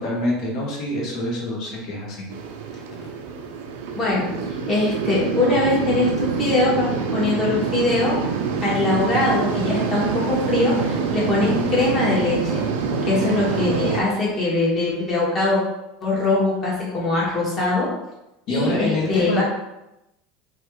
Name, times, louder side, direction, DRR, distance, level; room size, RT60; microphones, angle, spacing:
voice 1, 0.0-2.3 18.5-19.4, left 1 dB, 55° left, -2 dB, 1.0 m, -25 dB
sound 1, 2.3-14.0, right 5 dB, 80° right, 0.4 m, -26 dB
voice 2, 3.9-4.3 4.7-8.2 8.6-12.6 13.1-15.6 16.0-17.9 18.5-19.4, left 2 dB, 30° left, -6 dB, 1.5 m, -22 dB
3.1 x 2.4 x 3.1 m, 0.90 s
supercardioid pair, 120°, 0 cm